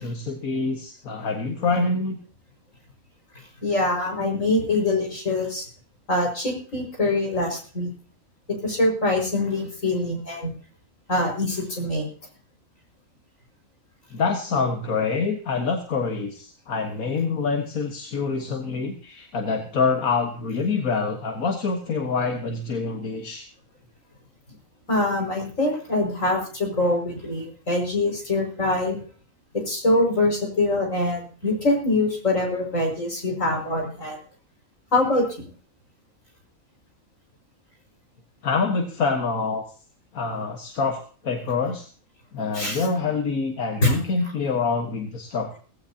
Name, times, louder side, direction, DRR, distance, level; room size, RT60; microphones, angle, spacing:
voice 1, 0.0-2.2 14.1-23.5 38.4-39.6 40.1-41.9 42.3-45.6, left 4 dB, 90° left, 3 dB, 2.0 m, -26 dB
voice 2, 3.6-5.7 6.1-7.9 8.6-10.5 11.1-12.1 24.9-29.0 29.5-34.2 34.9-35.2 42.5-42.8 43.8-43.9, left 2 dB, 65° left, 2 dB, 6.2 m, -24 dB
18.0 x 16.0 x 2.9 m, 0.41 s
omnidirectional pair, 1.4 m